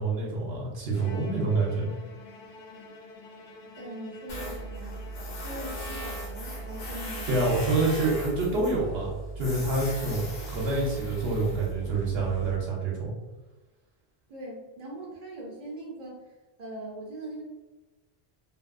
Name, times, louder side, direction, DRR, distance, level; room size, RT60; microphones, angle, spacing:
voice 1, 0.0-1.9 7.3-13.1, right 3 dB, 85° right, -4 dB, 0.9 m, -27 dB
Bowed string instrument, 0.9-7.9, left 2 dB, 65° left, 0.7 m, -47 dB
voice 2, 3.7-5.1 5.4-7.8 14.3-16.3 16.6-17.4, right 1 dB, 50° right, -3 dB, 0.6 m, -41 dB
Tools, 4.3-12.5, right 1 dB, 85° left, 1.0 m, -37 dB
2.6 x 2.6 x 2.4 m, 1.1 s
omnidirectional pair, 1.0 m